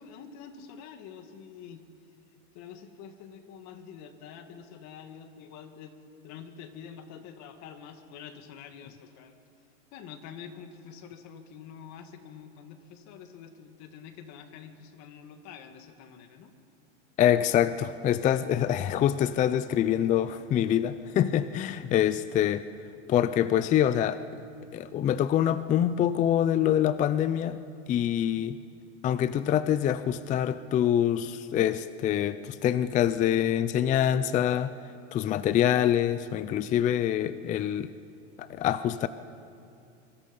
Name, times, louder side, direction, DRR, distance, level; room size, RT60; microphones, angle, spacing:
voice 1, 0.0-1.8 2.5-6.0 6.2-9.4 9.9-16.5, left 7 dB, 50° left, 7 dB, 2.2 m, -46 dB
voice 2, 17.2-22.6 23.1-24.2 24.7-27.6 27.9-28.6 29.0-34.7 35.1-37.9 38.4-39.1, left 10 dB, 20° left, 14 dB, 0.4 m, -25 dB
24.0 x 23.5 x 5.4 m, 2.5 s
supercardioid pair, 125°, 37 cm